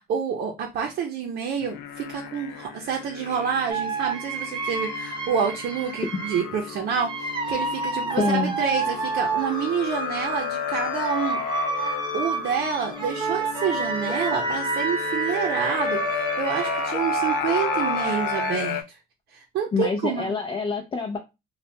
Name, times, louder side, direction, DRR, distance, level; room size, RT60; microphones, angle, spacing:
voice 1, 0.0-11.4 11.8-19.0 19.3-20.4, right 7 dB, 65° right, 0.7 m, -28 dB
sound 1, 1.6-18.8, left 9 dB, 85° left, 0.4 m, -33 dB
sound 2, 3.7-6.5 6.9-18.5, right 4 dB, 30° right, 0.7 m, -29 dB
voice 2, 8.2-8.5 19.7-21.2, left 4 dB, 30° left, 0.5 m, -26 dB
3.2 x 2.3 x 2.7 m
cardioid pair, 110°, 17 cm